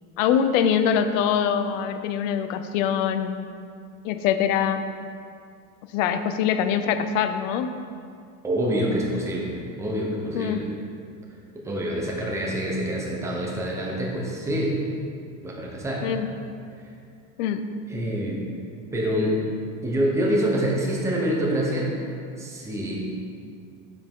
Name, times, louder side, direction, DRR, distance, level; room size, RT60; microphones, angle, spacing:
voice 1, 0.2-3.4 4.0-4.8 5.9-7.7 10.3-10.6 16.0-16.3 17.4-17.6, left 8 dB, 75° left, 9 dB, 0.6 m, -23 dB
voice 2, 8.4-10.7 11.5-14.8 15.4-16.1 16.8-16.9 17.9-18.4 18.9-19.4 19.8-21.9 22.4-23.0, equal, 5° right, -3 dB, 0.9 m, -26 dB
9.5 x 5.7 x 3.7 m, 2.3 s
cardioid pair, 160°, 39 cm